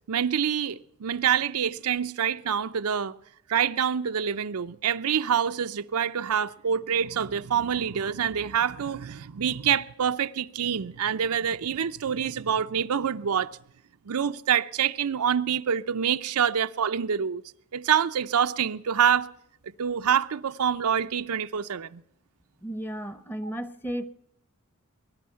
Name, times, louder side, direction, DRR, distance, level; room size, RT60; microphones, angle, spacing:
voice 1, 0.1-3.1 3.5-13.5 14.1-17.4 17.7-19.3 19.8-22.0, right 8 dB, 85° right, 0.5 m, -26 dB
voice 2, 22.6-24.1, right 1 dB, 10° left, 0.8 m, -34 dB
21.0 x 11.0 x 5.6 m
head